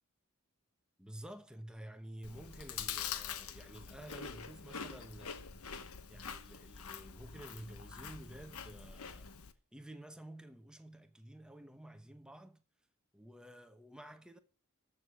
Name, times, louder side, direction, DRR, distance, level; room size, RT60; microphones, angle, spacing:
voice 1, 1.0-5.5 6.1-9.4 9.7-12.6 13.1-14.4, right 1 dB, 5° right, 1.0 m, -51 dB
Chewing mastication, 2.2-9.5, left 7 dB, 90° left, 1.1 m, -45 dB
13.5 x 6.4 x 6.2 m
head